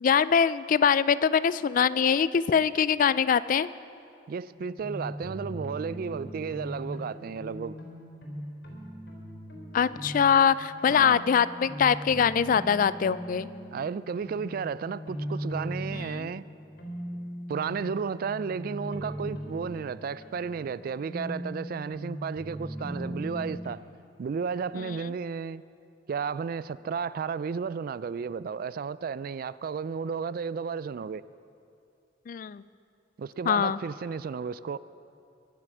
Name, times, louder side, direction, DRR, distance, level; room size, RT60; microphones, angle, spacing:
voice 1, 0.0-3.7 9.7-13.5 15.9-16.3 32.3-32.6 33.5-33.8, left 7 dB, 45° left, 0.3 m, -23 dB
voice 2, 4.3-7.8 10.9-11.2 13.7-16.4 17.5-23.8 24.2-25.6 26.1-31.2 33.2-34.8, right 6 dB, 50° right, 0.3 m, -33 dB
sound 1, 4.5-23.8, equal, 70° left, 4.4 m, -39 dB
22.5 x 7.7 x 6.1 m
head